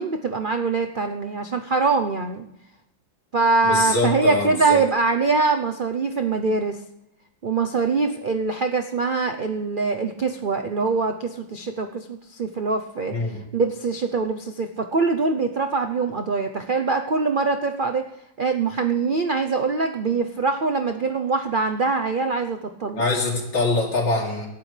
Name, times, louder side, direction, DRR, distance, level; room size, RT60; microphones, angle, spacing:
voice 1, 0.0-2.4 3.3-6.8 7.4-18.0 18.4-23.0, right 4 dB, 75° right, 6 dB, 0.4 m, -23 dB
voice 2, 3.6-4.8 13.1-13.4 23.0-24.5, left 2 dB, 70° left, -1 dB, 3.8 m, -24 dB
26.0 x 11.5 x 3.3 m, 0.84 s
omnidirectional pair, 2.0 m